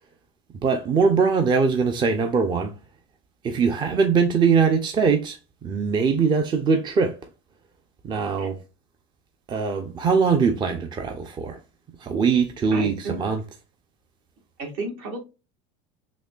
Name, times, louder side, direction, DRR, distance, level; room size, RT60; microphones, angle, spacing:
voice 1, 0.6-2.7 3.4-5.4 5.6-7.2 8.1-8.6 9.5-11.6 12.0-13.4, right 5 dB, 30° right, 0.5 m, -21 dB
voice 2, 12.7-13.3 14.6-15.2, right 3 dB, 65° right, 1.8 m, -32 dB
4.1 x 2.8 x 2.3 m
supercardioid pair, 100°, 16 cm